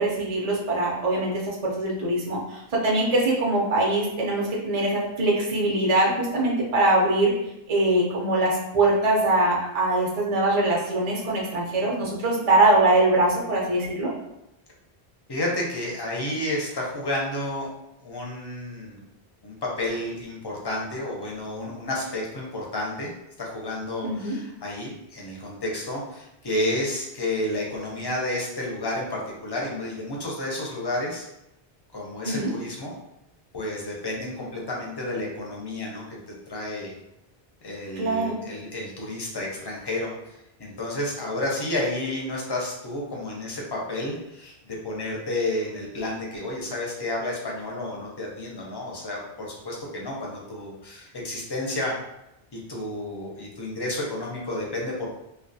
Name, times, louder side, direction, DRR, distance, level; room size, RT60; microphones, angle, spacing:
voice 1, 0.0-7.3 7.7-14.1 24.0-24.3 32.2-32.5 38.0-38.4, right 2 dB, 50° right, -3 dB, 0.5 m, -22 dB
voice 2, 15.3-17.7 18.0-19.0 19.4-23.1 23.4-31.3 31.9-32.9 33.5-36.9 37.6-52.0 52.5-55.1, left 1 dB, 35° left, -2 dB, 0.4 m, -31 dB
2.3 x 2.2 x 2.6 m, 0.87 s
omnidirectional pair, 1.0 m